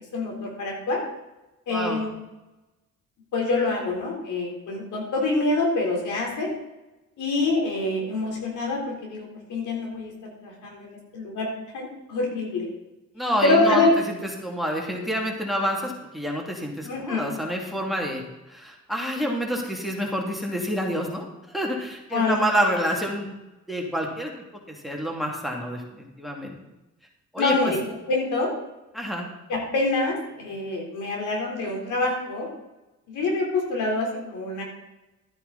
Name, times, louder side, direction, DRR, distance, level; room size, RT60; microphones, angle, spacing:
voice 1, 0.1-1.0 1.7-2.1 3.3-6.5 7.2-10.1 10.4-11.5 11.7-12.7 13.4-13.9 16.8-17.3 22.1-22.3 27.4-27.8 28.1-28.5 29.5-32.5 33.1-34.6, left 2 dB, 80° left, -1 dB, 3.8 m, -25 dB
voice 2, 1.7-2.0 13.1-18.2 18.5-23.3 23.7-24.3 24.7-26.6 27.3-27.7 28.9-29.3, equal, ahead, 0 dB, 2.6 m, -28 dB
12.5 x 9.8 x 4.1 m, 1.0 s
cardioid pair, 90°, 30 cm